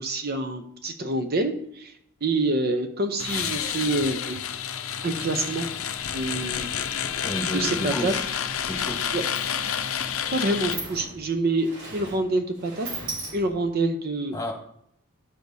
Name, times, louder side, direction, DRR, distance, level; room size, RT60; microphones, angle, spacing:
voice 1, 0.0-1.9 2.2-4.4 5.0-5.7 6.1-7.0 7.5-8.1 9.1-9.2 10.3-12.9 13.3-14.3, right 2 dB, 45° right, 6 dB, 0.7 m, -27 dB
sound 1, 3.2-10.8, left 8 dB, 80° left, 0.6 m, -29 dB
voice 2, 7.2-8.3 8.6-9.2 14.3-14.5, left 1 dB, 15° left, 0 dB, 1.5 m, -31 dB
Sliding door, 8.5-8.6 8.9-13.8, right 2 dB, 70° right, 3.8 m, -39 dB
11.5 x 6.5 x 2.7 m, 0.70 s
head